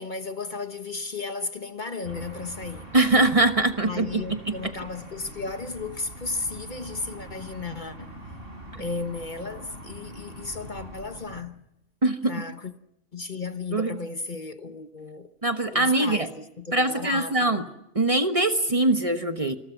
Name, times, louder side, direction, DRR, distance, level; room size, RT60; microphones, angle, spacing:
voice 1, 0.0-2.9 3.8-8.2 8.7-11.6 12.2-12.7 13.1-15.3 15.6-17.7, left 3 dB, 45° left, 1.2 m, -34 dB
sound 1, 2.0-11.4, right 1 dB, 50° right, 5.6 m, -43 dB
voice 2, 2.9-4.6 12.0-12.3 13.7-14.0 15.4-16.3 16.7-17.6 17.9-19.6, right 2 dB, 30° right, 1.2 m, -22 dB
27.0 x 21.5 x 5.9 m
omnidirectional pair, 1.3 m